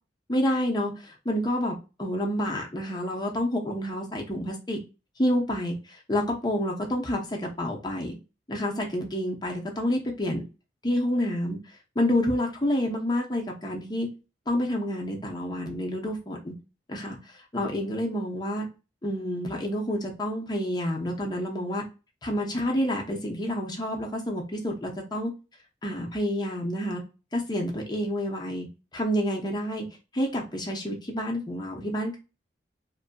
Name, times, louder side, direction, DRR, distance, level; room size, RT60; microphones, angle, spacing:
voice 1, 0.3-4.8 5.2-5.8 6.1-8.2 8.5-10.4 10.8-11.6 12.0-14.1 14.5-16.5 16.9-17.2 17.5-18.7 19.0-21.8 22.2-25.3 25.8-27.0 27.3-28.7 28.9-29.9 30.1-32.2, equal, 25° left, 0 dB, 0.6 m, -28 dB
2.6 x 2.5 x 2.2 m, 0.30 s
head